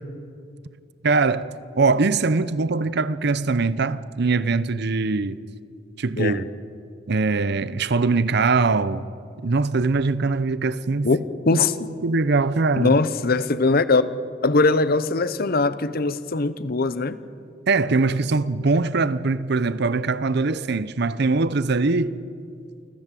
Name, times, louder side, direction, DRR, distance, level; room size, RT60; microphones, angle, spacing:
voice 1, 1.0-5.4 6.0-6.5 7.1-9.0 9.4-11.2 11.5-11.6 12.0-13.0 17.7-22.2, right 3 dB, 60° right, 0.7 m, -22 dB
voice 2, 12.8-14.1 14.4-17.2, left 3 dB, 50° left, 0.9 m, -21 dB
29.0 x 14.5 x 7.6 m
head